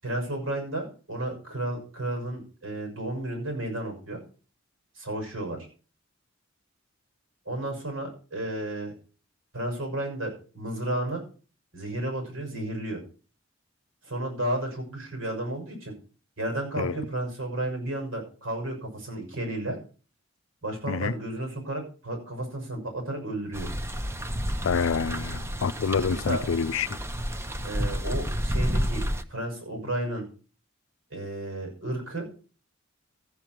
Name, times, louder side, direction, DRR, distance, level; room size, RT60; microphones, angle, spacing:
voice 1, 0.0-4.2 4.9-5.6 7.5-8.9 9.5-11.2 11.7-13.0 14.0-15.9 16.4-19.8 20.6-23.7 26.3-26.4 27.6-29.0 29.3-30.2 31.1-32.4, right 1 dB, 85° right, 6.2 m, -32 dB
sound 1, 23.5-29.2, equal, 15° right, 0.7 m, -30 dB
voice 2, 24.6-27.0, left 5 dB, 85° left, 0.5 m, -27 dB
14.0 x 7.5 x 4.6 m
head